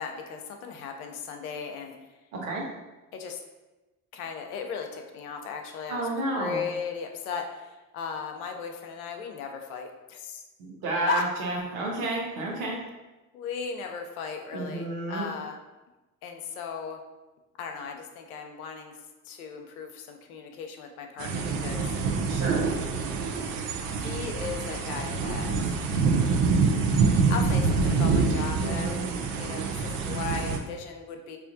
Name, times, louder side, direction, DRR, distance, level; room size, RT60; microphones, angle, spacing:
voice 1, 0.0-2.0 3.1-3.4 4.1-10.4 11.1-11.2 13.3-15.6 16.2-17.0 17.6-19.0 19.3-21.9 23.9-25.8 27.3-28.9 29.4-31.4, left 6 dB, 80° left, 4 dB, 0.5 m, -36 dB
voice 2, 2.3-2.6 5.9-6.7 10.6-12.8 14.5-15.3 22.3-22.6 28.6-29.0, right 2 dB, 75° right, -2 dB, 1.0 m, -31 dB
sound 1, 21.2-30.6, right 4 dB, 55° right, 0.6 m, -26 dB
4.9 x 2.4 x 2.5 m, 1.1 s
hypercardioid pair, 60°, 43 cm